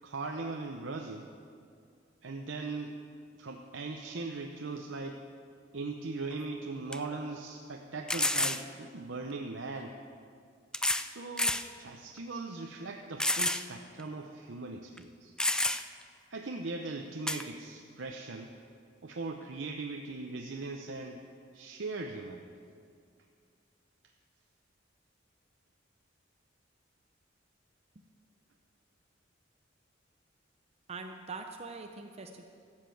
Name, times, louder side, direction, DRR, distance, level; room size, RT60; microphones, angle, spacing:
voice 1, 0.0-1.3 2.2-3.0 3.4-5.2 5.7-9.9 10.9-15.3 16.3-18.5 19.0-21.2 21.5-22.5, right 3 dB, 75° right, 2 dB, 0.7 m, -39 dB
sound 1, 6.3-6.4 6.9-7.0 8.1-8.6 9.8-9.9 10.7-11.1 11.4-11.7 12.2-12.3 13.2-13.6 14.0-14.1 15.0-15.1 15.4-16.0 17.3-17.4, left 1 dB, 5° left, 0.3 m, -29 dB
voice 2, 30.9-32.4, right 4 dB, 35° right, 5 dB, 0.6 m, -43 dB
13.0 x 7.4 x 7.7 m, 2.3 s
head